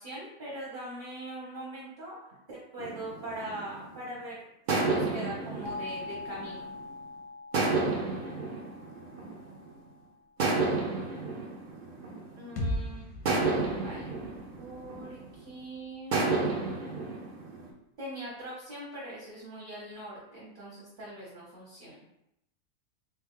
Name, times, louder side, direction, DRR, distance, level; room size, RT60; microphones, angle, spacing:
voice 1, 0.0-4.4 4.7-6.7 12.4-13.1 13.7-14.0 14.6-16.2 18.0-22.0, right 1 dB, 40° right, -6 dB, 0.9 m, -42 dB
sound 1, 2.8-4.1 4.7-6.9 7.5-9.7 10.4-12.7 13.3-15.5 16.1-17.7, right 3 dB, 60° right, 0.5 m, -31 dB
sound 2, 5.6-10.4, left 3 dB, 55° left, 0.7 m, -44 dB
sound 3, 12.6-16.4, left 1 dB, 90° left, 1.1 m, -39 dB
3.1 x 2.3 x 3.6 m, 0.83 s
omnidirectional pair, 1.5 m